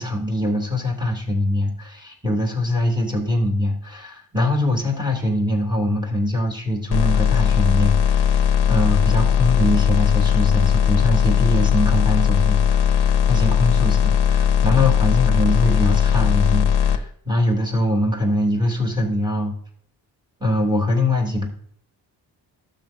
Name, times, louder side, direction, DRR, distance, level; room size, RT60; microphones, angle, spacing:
voice 1, 0.0-19.5 20.4-21.5, left 1 dB, 10° right, -1 dB, 2.8 m, -23 dB
sound 1, 6.9-17.0, left 8 dB, 55° left, 0.9 m, -18 dB
12.0 x 7.5 x 2.7 m, 0.65 s
supercardioid pair, 45°, 47 cm